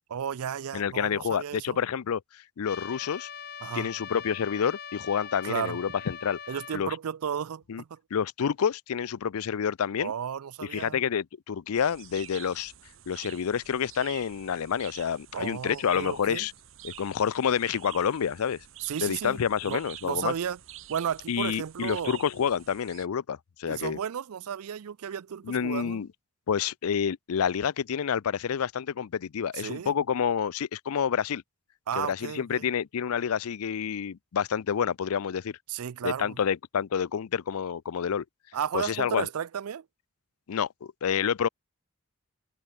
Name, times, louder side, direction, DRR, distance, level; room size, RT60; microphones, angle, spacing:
voice 1, 0.1-1.8 3.6-3.9 5.4-5.8 6.5-8.0 10.0-11.0 15.3-16.5 18.8-20.6 20.9-22.2 23.7-26.0 29.5-29.9 31.9-32.7 35.7-36.4 38.5-39.9, right 8 dB, 85° right, 0.4 m, -33 dB
voice 2, 0.7-3.3 3.7-6.4 6.7-7.0 7.7-7.8 8.1-10.1 10.7-12.7 13.1-16.5 16.8-18.6 19.0-20.3 21.3-24.0 25.5-26.1 26.5-31.4 31.9-35.6 36.0-38.2 38.7-39.3 40.5-41.5, left 7 dB, 85° left, 0.5 m, -28 dB
Trumpet, 2.6-6.8, left 7 dB, 45° left, 2.2 m, -41 dB
sound 1, 11.7-23.1, right 13 dB, 65° right, 1.2 m, -48 dB
head